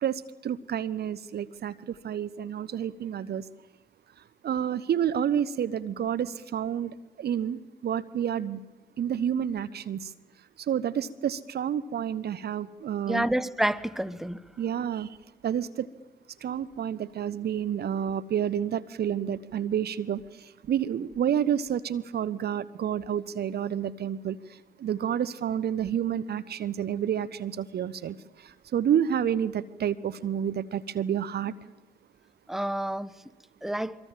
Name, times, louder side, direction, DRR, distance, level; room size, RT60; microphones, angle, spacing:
voice 1, 0.0-3.4 4.4-8.6 9.0-10.1 10.6-13.3 14.6-15.2 15.4-15.9 16.4-31.5, right 9 dB, 60° right, 0.9 m, -29 dB
voice 2, 13.1-14.4 32.5-33.1 33.6-34.0, right 1 dB, ahead, 1.2 m, -28 dB
25.0 x 23.5 x 7.5 m
hypercardioid pair, 40°, 19 cm